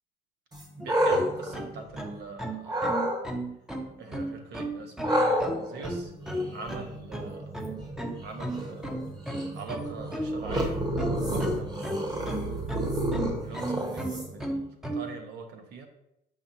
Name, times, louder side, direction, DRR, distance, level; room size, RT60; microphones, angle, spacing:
sound 1, 0.5-2.2 2.7-3.2 5.0-14.5, right 1 dB, 25° right, 1.3 m, -30 dB
sound 2, 0.8-15.1, right 1 dB, 5° right, 0.7 m, -34 dB
voice 1, 0.8-3.0 3.8-6.1 6.5-7.4 8.2-8.9 9.5-12.3 13.4-15.9, right 4 dB, 75° right, 4 dB, 1.1 m, -43 dB
7.5 x 5.6 x 2.7 m, 0.82 s
cardioid pair, 110°, 17 cm